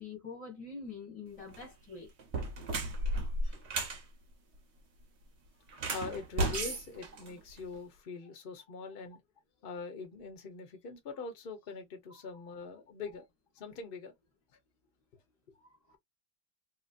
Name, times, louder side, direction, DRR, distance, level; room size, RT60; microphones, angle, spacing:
voice 1, 0.0-2.1 3.4-3.6 15.6-15.8, left 4 dB, 20° left, 1.0 m, -45 dB
sound 1, 1.4-1.7 2.2-4.0 5.7-7.8, right 2 dB, 60° right, 0.7 m, -34 dB
voice 2, 5.7-9.2 9.6-13.2 13.5-14.1, left 4 dB, 55° left, 0.6 m, -43 dB
3.0 x 2.9 x 2.5 m
omnidirectional pair, 2.3 m